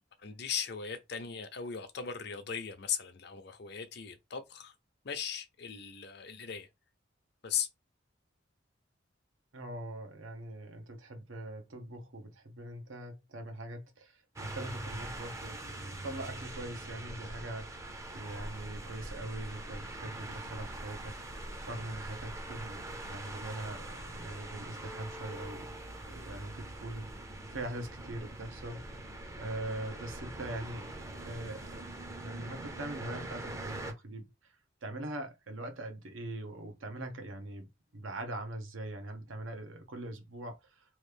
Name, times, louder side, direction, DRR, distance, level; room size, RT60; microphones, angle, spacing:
voice 1, 0.2-4.7 5.0-6.7 7.4-7.7, left 7 dB, 60° left, 0.6 m, -38 dB
voice 2, 9.5-25.7 26.1-31.9 32.2-34.5 34.8-41.0, right 1 dB, 90° right, 0.8 m, -42 dB
sound 1, 14.4-33.9, right 1 dB, 15° right, 0.5 m, -43 dB
3.0 x 2.4 x 3.3 m
head